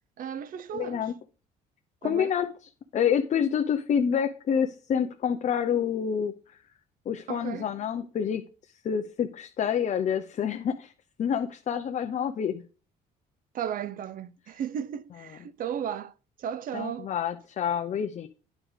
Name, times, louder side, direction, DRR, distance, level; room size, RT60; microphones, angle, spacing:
voice 1, 0.2-1.1 2.0-2.4 7.3-7.7 13.5-17.1, right 9 dB, 55° right, 0.7 m, -35 dB
voice 2, 0.7-1.1 2.0-2.5 2.9-6.3 7.1-8.4 8.8-10.9 11.2-12.6 16.7-18.3, left 8 dB, 45° left, 0.8 m, -27 dB
9.8 x 5.0 x 6.5 m
cardioid pair, 110°, 17 cm